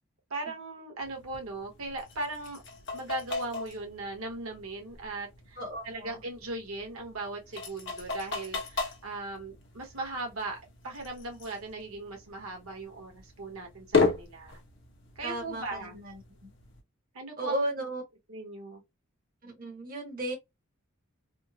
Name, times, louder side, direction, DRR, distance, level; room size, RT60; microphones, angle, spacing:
voice 1, 0.3-2.6 2.9-5.6 5.8-10.6 10.8-14.6 15.2-15.9 17.1-17.6 18.3-18.8, right 2 dB, 80° right, 1.1 m, -38 dB
sound 1, 1.0-16.8, left 4 dB, 55° left, 1.0 m, -36 dB
voice 2, 5.6-6.2 15.2-16.5 17.4-18.0 19.4-20.4, right 1 dB, 40° right, 1.2 m, -35 dB
3.5 x 2.0 x 2.7 m
head